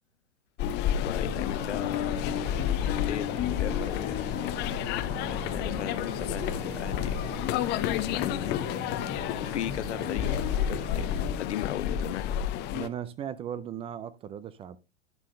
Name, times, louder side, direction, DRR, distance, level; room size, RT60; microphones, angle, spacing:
sound 1, 0.6-12.9, left 10 dB, 30° left, 0.7 m, -30 dB
voice 1, 0.9-2.3 2.7-4.2 5.3-7.2 7.8-8.6 9.4-11.1 11.4-12.3, left 11 dB, 65° left, 0.7 m, -37 dB
Organ, 1.1-11.9, right 8 dB, 45° right, 1.2 m, -43 dB
voice 2, 12.7-14.8, right 9 dB, 15° right, 0.4 m, -37 dB
10.5 x 7.4 x 3.2 m
figure-of-eight pair, 105°, 37 cm